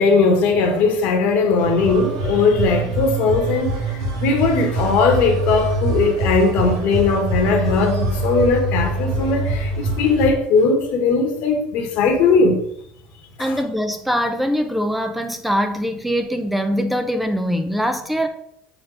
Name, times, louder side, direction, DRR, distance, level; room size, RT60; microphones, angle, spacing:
voice 1, 0.0-3.7 4.2-12.6 13.4-13.5, left 4 dB, 65° left, 1.5 m, -18 dB
sound 1, 1.6-10.3, right 3 dB, 90° right, 2.1 m, -24 dB
voice 2, 13.4-18.3, equal, 5° right, 0.7 m, -22 dB
6.4 x 4.4 x 5.7 m
supercardioid pair, 105°, 3 cm